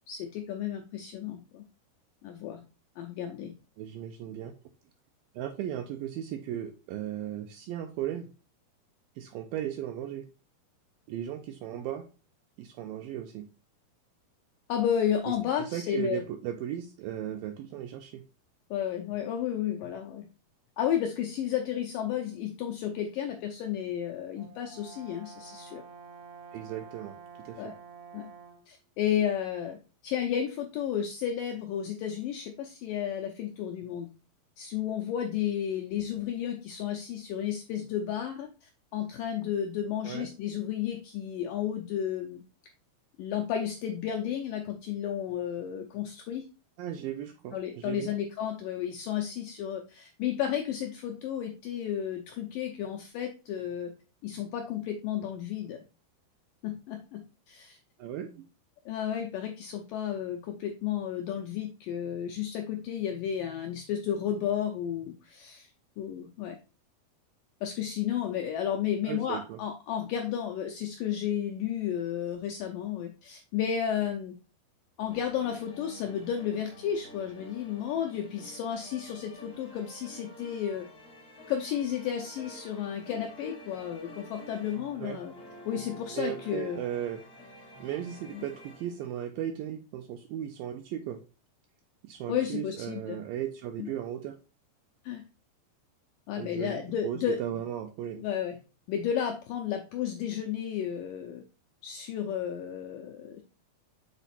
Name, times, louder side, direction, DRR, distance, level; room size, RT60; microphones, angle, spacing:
voice 1, 0.1-1.6 2.2-2.6 3.0-3.5 14.7-16.2 18.7-20.3 20.8-25.8 27.6-27.7 28.1-28.3 28.7-29.8 30.0-34.1 34.6-42.4 43.2-46.5 47.5-53.9 54.2-55.8 56.6-57.8 58.9-65.7 66.0-66.6 67.6-74.4 75.0-80.9 81.5-85.3 85.7-86.8 88.3-88.4 92.3-93.2 93.8-93.9 95.0-95.2 96.3-97.4 98.2-98.6 98.9-101.4 101.8-103.4, left 9 dB, 80° left, 3 dB, 1.9 m, -32 dB
voice 2, 3.8-4.5 5.4-8.3 9.2-10.2 11.1-12.1 12.6-13.5 15.3-18.2 26.5-27.2 27.5-27.7 40.0-40.3 46.8-48.1 58.0-58.5 69.0-69.6 85.0-85.2 86.1-87.2 87.8-91.2 92.0-94.4 96.4-98.2, right 10 dB, 85° right, 6 dB, 2.1 m, -36 dB
Brass instrument, 24.4-28.8, right 5 dB, 70° right, 2.1 m, -49 dB
sound 1, 75.1-89.3, equal, 60° left, 0.7 m, -49 dB
7.1 x 4.0 x 4.2 m, 0.32 s
omnidirectional pair, 4.7 m